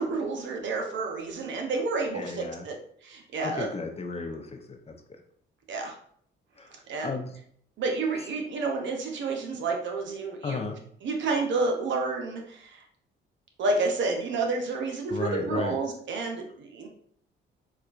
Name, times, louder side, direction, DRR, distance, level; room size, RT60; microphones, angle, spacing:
voice 1, 0.0-2.7 3.0-3.7 5.7-5.9 6.9-7.1 7.8-10.6 11.0-12.8 13.6-16.9, right 3 dB, 70° right, 1 dB, 0.8 m, -30 dB
voice 2, 2.1-2.7 3.4-5.2 6.6-6.7 7.0-7.4 10.4-10.8 15.1-15.8, left 4 dB, 30° left, 4 dB, 0.5 m, -34 dB
4.3 x 2.4 x 2.4 m, 0.63 s
cardioid pair, 90°, 20 cm